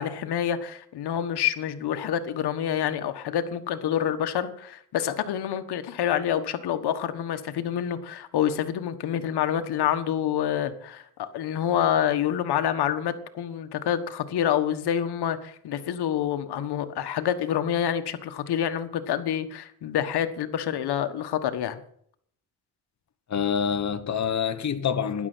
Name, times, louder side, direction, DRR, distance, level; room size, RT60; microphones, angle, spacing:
voice 1, 0.0-21.8, left 9 dB, 80° left, 1.5 m, -27 dB
voice 2, 23.3-25.3, left 7 dB, 45° left, 1.3 m, -26 dB
12.5 x 10.5 x 6.2 m
cardioid pair, 90°, 39 cm